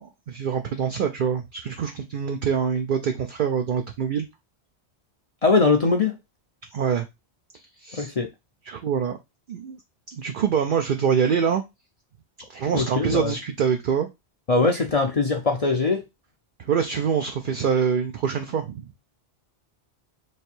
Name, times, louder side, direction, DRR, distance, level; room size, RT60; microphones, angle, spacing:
voice 1, 0.0-4.3 6.7-7.1 7.8-8.1 8.7-9.2 9.5-9.8 10.1-11.6 12.5-14.1 16.6-18.9, right 7 dB, 60° right, 0.6 m, -25 dB
voice 2, 5.4-6.2 7.9-8.3 12.7-13.3 14.5-16.0, left 3 dB, 45° left, 0.5 m, -21 dB
3.3 x 2.7 x 4.3 m
omnidirectional pair, 1.1 m